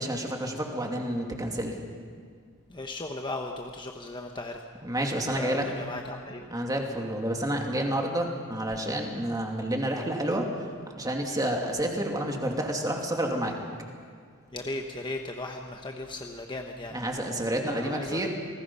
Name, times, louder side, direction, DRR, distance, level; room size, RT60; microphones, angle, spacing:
voice 1, 0.0-1.8 4.8-5.8 6.5-10.5 11.0-13.5 16.9-18.3, right 1 dB, 15° right, 1 dB, 2.6 m, -29 dB
voice 2, 2.7-4.6 5.2-6.5 14.5-17.0 17.6-18.3, left 2 dB, 20° left, 3 dB, 1.1 m, -36 dB
28.5 x 19.5 x 5.6 m, 2.1 s
head